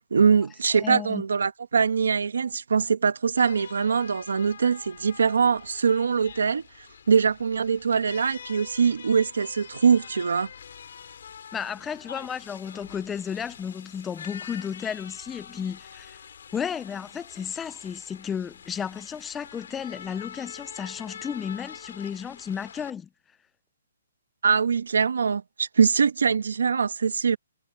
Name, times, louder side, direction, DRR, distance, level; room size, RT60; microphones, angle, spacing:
voice 1, 0.1-6.6 7.1-10.5 24.4-27.4, right 6 dB, 90° right, 1.4 m, -23 dB
voice 2, 0.7-1.2 11.5-16.2 16.5-23.1, left 7 dB, 5° left, 0.3 m, -33 dB
sound 1, 3.4-22.9, left 7 dB, 50° left, 6.5 m, -45 dB
hypercardioid pair, 180°, 0 cm